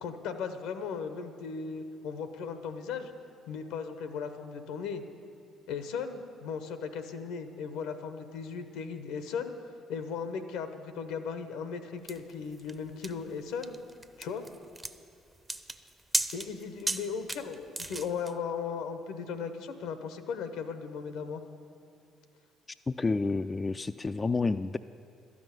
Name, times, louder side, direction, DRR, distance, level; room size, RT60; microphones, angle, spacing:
voice 1, 0.0-3.1 3.5-5.0 5.7-9.5 9.9-13.7 14.2-14.4 16.3-21.4, left 6 dB, 75° left, 9 dB, 0.8 m, -37 dB
sound 1, 12.1-18.3, right 2 dB, 20° right, 0.7 m, -36 dB
voice 2, 22.9-24.8, left 3 dB, 30° left, 10 dB, 0.3 m, -29 dB
12.0 x 6.3 x 9.1 m, 2.4 s
hypercardioid pair, 55°, 0 cm